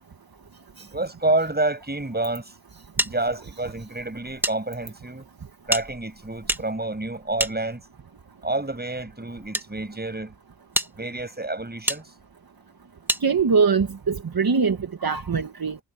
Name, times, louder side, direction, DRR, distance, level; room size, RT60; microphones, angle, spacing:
voice 1, 0.8-2.5 3.0-5.3 5.7-7.8 8.4-10.3 11.0-12.1, right 2 dB, 25° right, 7.9 m, -28 dB
sound 1, 3.0-4.6 4.8-4.9 5.7-8.1 8.9-9.7 10.2-10.3 10.7-10.9 11.9-12.0 13.1-13.2, equal, 5° right, 1.5 m, -29 dB
voice 2, 13.2-15.8, right 5 dB, 55° right, 1.5 m, -22 dB
wide cardioid pair, 95°, 42 cm